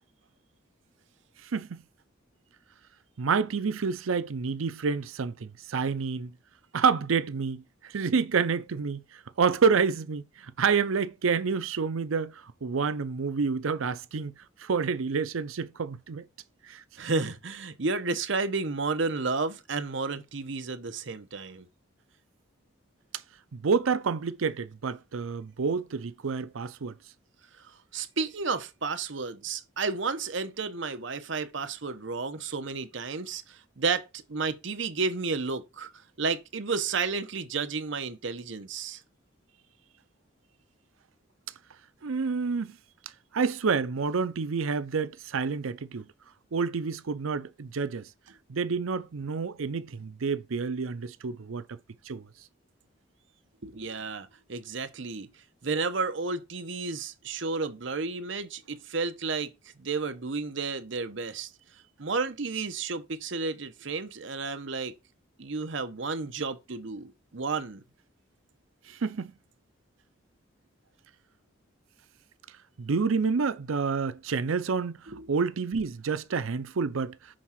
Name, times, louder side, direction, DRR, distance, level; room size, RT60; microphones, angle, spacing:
voice 1, 1.4-1.8 3.2-6.3 6.7-14.3 14.6-16.3 16.6-16.8 23.5-27.0 42.0-42.8 43.3-46.1 46.5-48.1 48.5-51.8 52.1-52.3 68.9-69.3 72.8-75.0 75.3-77.2, right 5 dB, 85° right, 0.6 m, -28 dB
voice 2, 17.0-21.7 27.9-35.9 36.2-39.0 53.6-55.3 55.6-59.5 59.8-61.5 62.0-64.9 65.4-67.8 75.1-75.3, right 4 dB, 65° right, 0.9 m, -32 dB
6.3 x 3.6 x 5.8 m
head